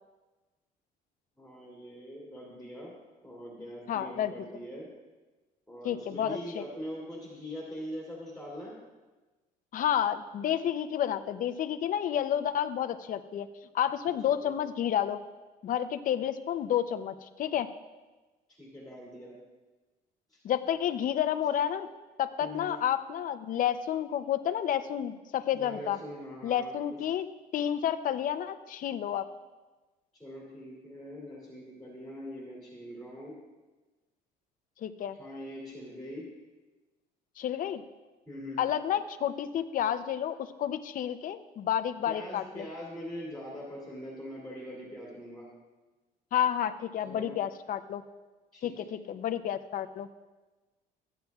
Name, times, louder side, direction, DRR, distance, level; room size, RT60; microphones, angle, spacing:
voice 1, 1.4-2.9 3.2-4.9 5.7-8.7 14.3-14.6 18.5-19.4 20.3-20.4 22.4-22.7 25.5-27.0 30.2-33.4 35.1-36.3 38.3-38.6 42.1-45.5 47.0-47.4 48.5-48.9, equal, ahead, -5 dB, 2.7 m, -42 dB
voice 2, 3.9-4.3 5.8-6.6 9.7-13.5 13.7-15.2 15.6-17.7 20.4-21.9 22.2-26.0 26.4-27.3 27.5-29.3 34.8-35.2 37.4-37.8 38.6-42.6 46.3-48.0 48.6-50.1, left 10 dB, 55° left, 11 dB, 0.6 m, -30 dB
14.5 x 9.2 x 2.4 m, 1.2 s
cardioid pair, 110°, 17 cm